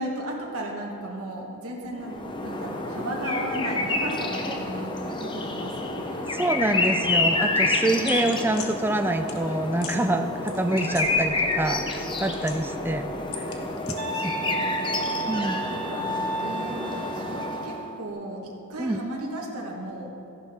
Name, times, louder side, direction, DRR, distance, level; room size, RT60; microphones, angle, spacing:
voice 1, 0.0-6.3 14.0-14.8 15.4-20.2, right 1 dB, 90° right, -1 dB, 1.5 m, -35 dB
sound 1, 2.0-17.9, left 2 dB, 20° left, 0.7 m, -29 dB
voice 2, 6.3-13.1 13.4-13.5 13.9-14.3 15.2-15.6 18.8-19.0, right 1 dB, 10° right, 7 dB, 0.4 m, -26 dB
sound 2, 8.1-8.7 9.3-9.4 9.8-10.0 10.5-11.6 11.9-12.8 13.3-14.0, left 7 dB, 80° left, 1.1 m, -40 dB
sound 3, 14.0-17.6, right 2 dB, 65° right, 1.0 m, -32 dB
14.0 x 10.5 x 3.6 m, 2.7 s
head